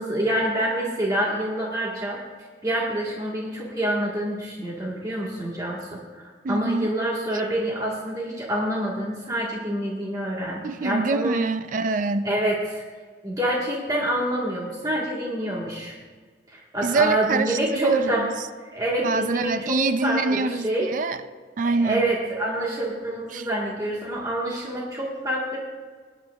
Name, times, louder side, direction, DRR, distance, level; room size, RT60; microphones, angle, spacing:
voice 1, 0.0-2.2 2.6-6.2 6.5-11.4 12.2-12.8 13.2-15.9 16.5-18.3 18.7-20.9 21.6-25.6, right 1 dB, 20° right, -4 dB, 1.5 m, -27 dB
voice 2, 6.4-6.9 10.6-12.3 16.8-18.3 19.0-21.2 21.6-22.0 23.3-23.5, right 4 dB, 45° right, 11 dB, 0.4 m, -25 dB
18.0 x 10.0 x 2.4 m, 1.5 s
head